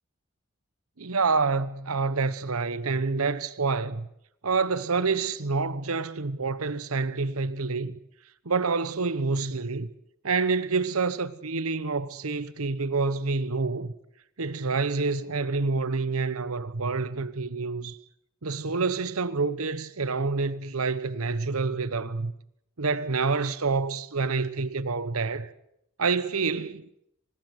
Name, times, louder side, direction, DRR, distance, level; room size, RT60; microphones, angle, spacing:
voice 1, 1.0-4.1 4.4-8.0 8.4-9.9 10.2-13.9 14.4-18.0 18.4-22.3 22.8-25.5 26.0-26.9, right 4 dB, 85° right, 1.1 m, -27 dB
24.5 x 20.0 x 8.0 m
head